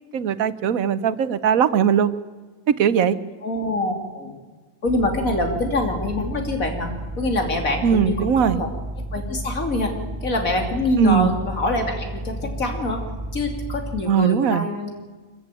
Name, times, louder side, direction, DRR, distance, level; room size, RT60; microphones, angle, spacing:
voice 1, 0.1-2.1 2.7-3.2 7.8-8.6 11.0-11.3 14.1-14.7, right 8 dB, 90° right, 15 dB, 1.3 m, -19 dB
voice 2, 3.4-4.3 4.8-8.7 9.1-9.9 10.2-13.0 13.3-15.0, left 2 dB, 85° left, 3 dB, 3.4 m, -25 dB
sound 1, 4.8-14.0, right 1 dB, 20° right, 5.6 m, -32 dB
25.0 x 15.0 x 9.2 m, 1.4 s
omnidirectional pair, 1.4 m